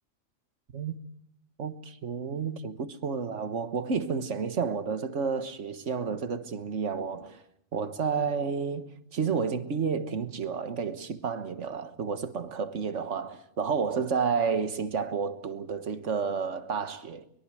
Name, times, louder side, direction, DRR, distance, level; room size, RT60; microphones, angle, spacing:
voice 1, 1.6-7.4 7.7-17.2, right 5 dB, 90° right, 1.7 m, -31 dB
23.5 x 22.5 x 7.7 m
omnidirectional pair, 1.2 m